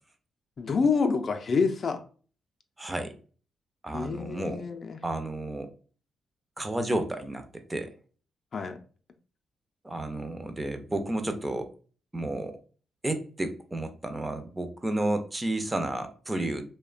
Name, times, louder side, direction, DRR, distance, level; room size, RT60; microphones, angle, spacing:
voice 1, 0.6-2.0 3.9-5.0 8.5-8.8, left 5 dB, 50° left, 0.4 m, -27 dB
voice 2, 2.8-3.1 3.8-4.7 5.0-5.7 6.6-7.9 9.8-11.7 12.1-12.6 13.0-16.6, right 1 dB, 20° right, 0.4 m, -31 dB
2.8 x 2.1 x 2.4 m
cardioid pair, 80°, 0 cm